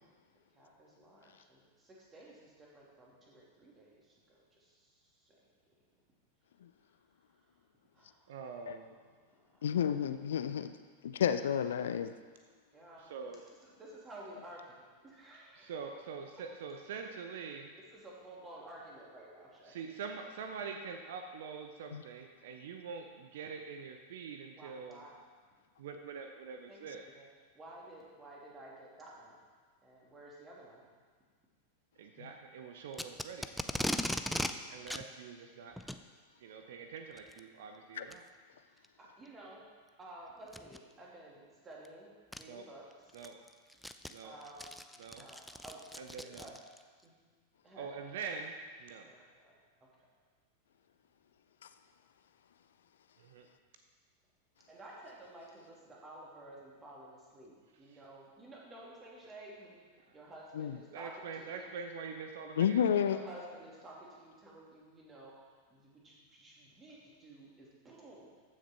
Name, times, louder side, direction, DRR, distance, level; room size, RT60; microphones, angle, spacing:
voice 1, 0.5-5.4 7.9-8.3 9.5-9.6 12.7-13.3 13.6-15.7 16.3-16.5 17.7-19.8 24.6-25.1 26.7-27.3 27.5-29.4 29.8-30.8 36.6-36.7 38.6-39.7 40.0-42.9 44.2-44.8 45.2-46.6 47.0-47.1 47.6-47.9 49.0-49.6 54.7-61.7 62.9-65.4 65.7-68.3, right 1 dB, 20° right, -4 dB, 2.8 m, -53 dB
voice 2, 8.3-8.9 13.0-13.4 15.6-17.7 19.7-25.0 25.8-27.1 32.0-33.5 34.7-35.8 36.4-38.3 42.5-42.7 43.1-43.4 44.1-44.3 45.0-45.3 46.0-46.5 47.8-49.1 53.2-53.5 57.9-58.0 60.1-60.2 60.9-62.9, right 5 dB, 55° right, 5 dB, 0.8 m, -44 dB
voice 3, 9.6-10.7 11.0-12.1 21.9-22.0 38.0-38.1 60.6-60.7 62.6-63.2, left 8 dB, 60° left, 11 dB, 0.4 m, -30 dB
Packing tape duct tape, 32.9-34.5 34.9-35.0 35.8-36.0 37.2-37.4 38.1-38.2 38.8-38.9 40.5-40.8 41.8-41.9 42.3-42.4 42.9-46.8, equal, ahead, 0.5 m, -38 dB
14.5 x 6.6 x 4.5 m, 1.5 s
figure-of-eight pair, 90°, 0 cm